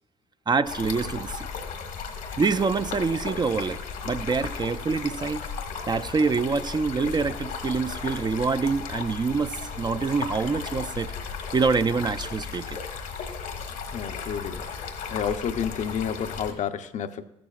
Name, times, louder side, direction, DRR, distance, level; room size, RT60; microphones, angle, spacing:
voice 1, 0.5-1.5 2.4-3.8 4.0-5.5 5.9-11.1 11.5-12.8, right 4 dB, 30° right, 11 dB, 0.5 m, -26 dB
Stream, 0.6-16.5, left 5 dB, 80° left, 1.3 m, -35 dB
voice 2, 13.9-14.7 15.1-17.2, left 8 dB, 60° left, 8 dB, 0.6 m, -30 dB
14.5 x 12.0 x 2.4 m, 0.83 s
supercardioid pair, 55°, 14 cm